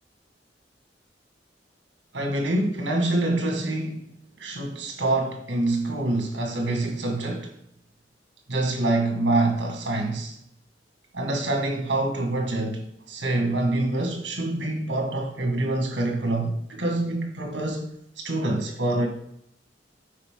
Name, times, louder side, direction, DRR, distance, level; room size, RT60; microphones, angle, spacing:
voice 1, 2.1-4.1 4.4-7.5 8.5-10.4 11.1-17.9 18.2-19.1, right 2 dB, 80° right, 1.9 m, -26 dB
8.4 x 5.1 x 3.8 m
head